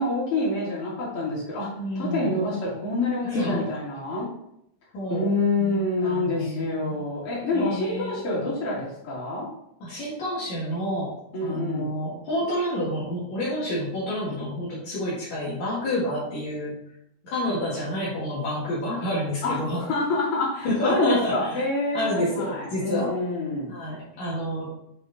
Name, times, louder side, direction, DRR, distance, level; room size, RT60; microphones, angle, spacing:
voice 1, 0.0-1.7 2.0-4.3 5.1-9.5 11.3-11.9 19.4-23.7, left 2 dB, 45° left, -7 dB, 3.5 m, -27 dB
voice 2, 1.8-2.3 3.2-3.7 4.9-5.3 5.6-7.0 7.5-8.1 9.8-11.1 11.4-16.7 17.2-19.8 20.6-21.5 21.9-23.1 23.7-24.7, equal, 70° left, -8 dB, 3.2 m, -29 dB
7.7 x 4.3 x 4.1 m, 0.76 s
omnidirectional pair, 3.4 m